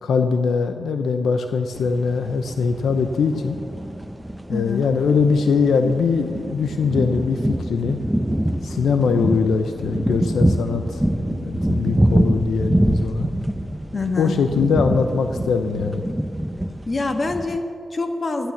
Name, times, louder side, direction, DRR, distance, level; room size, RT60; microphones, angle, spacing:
voice 1, 0.0-3.6 4.5-8.0 8.6-11.0 11.3-13.3 14.2-16.0, left 5 dB, 85° left, 7 dB, 0.7 m, -21 dB
sound 1, 1.7-17.6, right 1 dB, 5° right, 0.8 m, -25 dB
voice 2, 4.5-4.8 13.9-14.3 16.9-18.5, left 3 dB, 40° left, 5 dB, 1.6 m, -25 dB
13.0 x 11.0 x 7.1 m, 2.2 s
cardioid pair, 65°, 0 cm